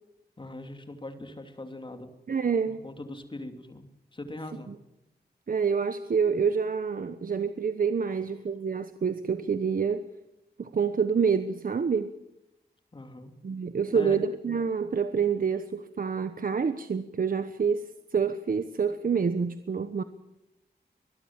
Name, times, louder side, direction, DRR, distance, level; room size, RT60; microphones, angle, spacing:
voice 1, 0.4-2.1 2.8-4.7 12.9-13.3 13.9-14.2, left 2 dB, 30° left, 2.9 m, -41 dB
voice 2, 2.3-2.8 4.7-4.8 5.5-10.0 10.6-12.1 13.4-20.0, right 6 dB, 55° right, 1.1 m, -27 dB
24.5 x 21.0 x 7.4 m
wide cardioid pair, 125°, 17 cm